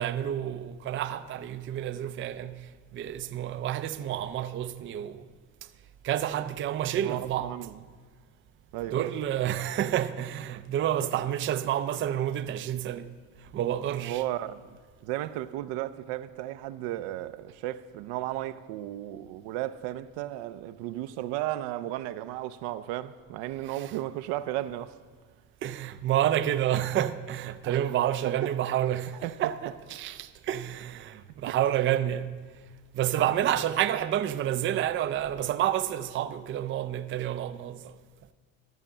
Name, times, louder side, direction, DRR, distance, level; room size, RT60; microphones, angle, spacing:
voice 1, 0.0-5.3 5.6-5.7 6.0-7.5 8.9-13.1 13.4-14.2 23.6-23.9 25.6-32.4 32.9-38.0, right 11 dB, 30° right, 0.4 m, -29 dB
voice 2, 7.0-7.7 8.7-9.1 14.0-24.9 27.6-27.8 28.4-28.5 29.2-29.3 31.5-31.6 33.2-33.3, right 14 dB, 85° right, 0.6 m, -34 dB
12.5 x 6.6 x 7.2 m
cardioid pair, 125°, 41 cm